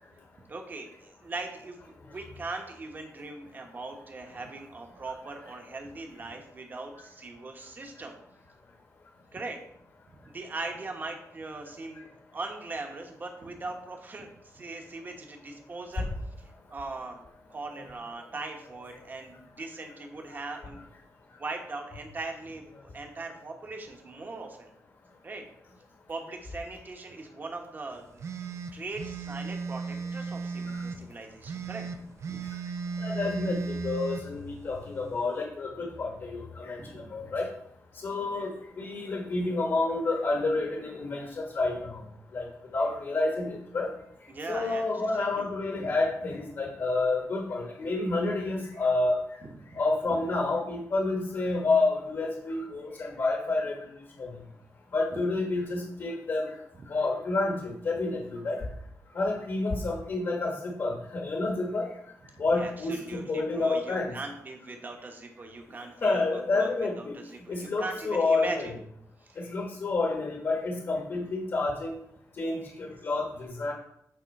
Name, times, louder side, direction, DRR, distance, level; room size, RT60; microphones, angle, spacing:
voice 1, 0.5-8.1 9.3-9.6 10.2-16.1 16.7-17.2 17.5-20.8 21.4-24.7 25.2-25.4 26.1-28.0 28.7-32.4 36.8-37.3 44.3-44.9 45.2-45.5 49.4-49.8 50.1-50.2 62.5-66.2 66.5-66.7 67.0-68.6 69.2-69.4, right 3 dB, 30° right, 3 dB, 1.3 m, -40 dB
sound 1, 28.2-31.0 31.4-34.2, right 4 dB, 50° right, 0.6 m, -35 dB
voice 2, 33.0-37.5 37.9-42.1 42.3-42.5 42.7-43.9 44.5-49.2 49.7-53.9 54.2-54.4 54.9-56.5 56.9-58.7 59.1-61.9 62.4-64.2 66.0-67.1 67.5-68.7 69.4-71.9 72.4-73.7, left 3 dB, 45° left, 1 dB, 1.4 m, -29 dB
9.0 x 3.7 x 5.4 m, 0.73 s
wide cardioid pair, 155°, 6 cm